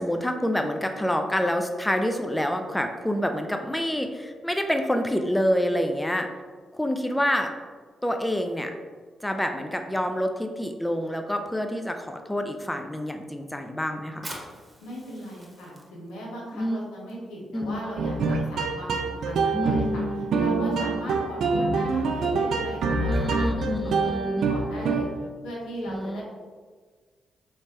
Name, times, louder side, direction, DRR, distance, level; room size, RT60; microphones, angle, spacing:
voice 1, 0.0-6.3 6.7-7.5 8.0-8.7 9.2-14.3 16.5-16.9 17.5-17.8 19.5-20.3 23.1-24.5 25.9-26.2, equal, 10° left, 5 dB, 0.4 m, -27 dB
Fire, 14.2-21.3, right 1 dB, 20° right, 1.0 m, -48 dB
voice 2, 14.8-20.0 20.3-24.2 24.5-25.1 25.4-26.2, equal, 90° left, -4 dB, 0.9 m, -37 dB
sound 1, 18.0-25.3, right 4 dB, 75° right, 0.3 m, -25 dB
3.3 x 3.1 x 2.8 m, 1.5 s
supercardioid pair, 50°, 0 cm